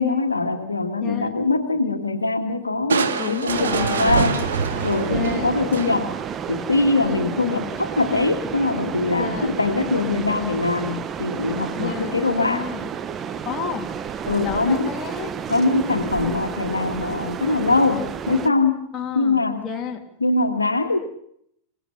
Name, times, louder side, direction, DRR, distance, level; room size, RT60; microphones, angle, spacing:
voice 1, 0.0-4.4 4.8-6.2 6.5-12.6 14.3-14.9 15.5-18.8 19.2-19.7 20.2-21.0, left 3 dB, 80° left, 7 dB, 1.8 m, -22 dB
voice 2, 1.0-1.5 3.2-4.2 5.1-5.5 7.0-7.3 9.2-9.6 11.8-12.2 12.5-12.9 13.4-13.9 14.4-15.3 18.9-20.0, left 6 dB, 25° left, 2 dB, 3.1 m, -31 dB
Crushing, 2.9-6.3, right 6 dB, 70° right, 2.2 m, -25 dB
sound 1, 3.5-18.5, right 7 dB, 25° right, 1.3 m, -31 dB
27.0 x 18.0 x 6.9 m, 0.70 s
figure-of-eight pair, 90°, 0 cm